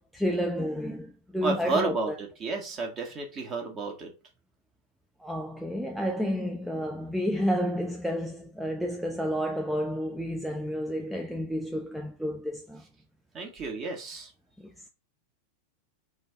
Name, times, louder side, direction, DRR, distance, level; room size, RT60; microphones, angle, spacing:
voice 1, 0.0-2.2 5.2-12.8 14.6-14.7, equal, ahead, 0.5 m, -30 dB
voice 2, 1.4-4.1 13.3-14.3, right 3 dB, 30° right, 1.4 m, -31 dB
3.8 x 2.6 x 3.5 m
figure-of-eight pair, 90°, 0 cm